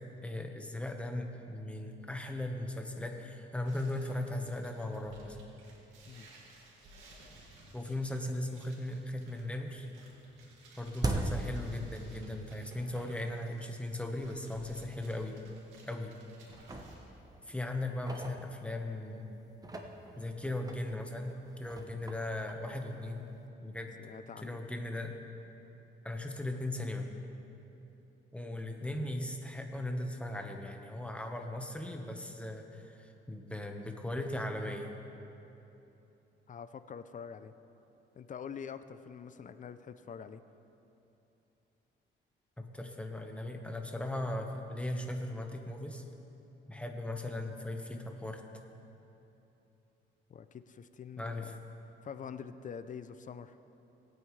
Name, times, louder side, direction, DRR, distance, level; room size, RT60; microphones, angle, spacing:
voice 1, 0.2-5.4 7.7-9.9 10.8-15.4 15.9-16.2 17.5-19.2 20.2-23.3 23.6-24.0 24.4-25.2 26.0-27.1 28.3-34.9 42.6-46.1 46.7-48.4 51.2-51.5, left 1 dB, 5° left, 3 dB, 1.2 m, -38 dB
sound 1, 3.6-17.0, right 2 dB, 90° right, 2.3 m, -58 dB
sound 2, 8.2-8.3 8.7-9.3 9.5-12.5 12.8-12.9 13.6-13.7 14.2-14.3 14.7-14.8 15.5-16.1 16.4-19.0 19.5-23.4, right 2 dB, 20° right, 1.0 m, -41 dB
voice 2, 24.0-24.6 36.5-37.5 38.2-40.4 50.3-51.6 52.0-53.6, left 7 dB, 40° left, 12 dB, 0.5 m, -45 dB
19.0 x 8.8 x 3.3 m, 3.0 s
cardioid pair, 90°, 20 cm